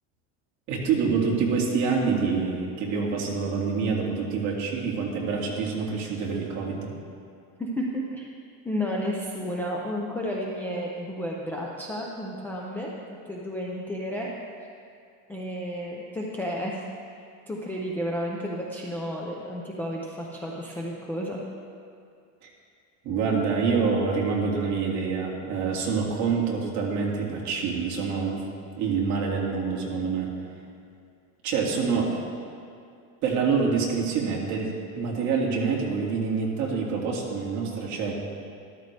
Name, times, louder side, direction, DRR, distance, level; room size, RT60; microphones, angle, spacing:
voice 1, 0.7-6.9 23.0-28.4 28.8-30.3 31.4-32.2 33.2-38.1, right 5 dB, 45° right, -3 dB, 2.2 m, -26 dB
voice 2, 7.6-8.3 8.6-12.9 13.2-14.7 15.3-16.8 17.1-21.4, equal, 5° left, -4 dB, 0.4 m, -32 dB
13.5 x 13.0 x 3.3 m, 2.4 s
cardioid pair, 170°, 40 cm